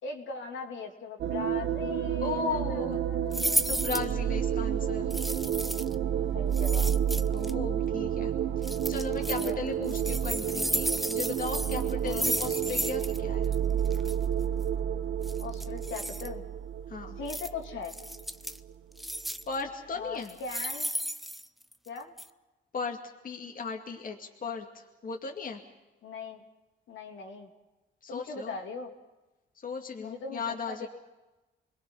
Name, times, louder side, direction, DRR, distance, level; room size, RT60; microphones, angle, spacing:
voice 1, 0.0-3.6 6.3-6.9 9.4-9.5 12.0-12.3 15.4-16.4 17.2-17.9 19.9-20.9 21.9-22.1 26.0-26.4 26.9-27.5 28.1-28.9 30.0-30.9, left 4 dB, 75° left, 2 dB, 3.1 m, -39 dB
sound 1, 1.2-18.7, right 9 dB, 70° right, 1.4 m, -30 dB
voice 2, 2.2-3.0 3.7-5.1 7.3-13.5 16.9-17.2 19.5-20.4 22.7-23.0 23.2-25.6 28.0-28.6 29.6-30.9, left 4 dB, 45° left, 2 dB, 2.4 m, -36 dB
sound 2, 3.3-4.1 5.1-6.0 6.5-7.5 8.6-9.5 9.9-13.2 13.4-13.6 13.9-14.1 15.2-16.3 17.3-17.5 17.9-18.6 19.0-19.6 20.2-21.9 22.2-22.3, equal, ahead, 0.8 m, -33 dB
28.0 x 21.0 x 5.7 m, 1.1 s
cardioid pair, 90°, 20 cm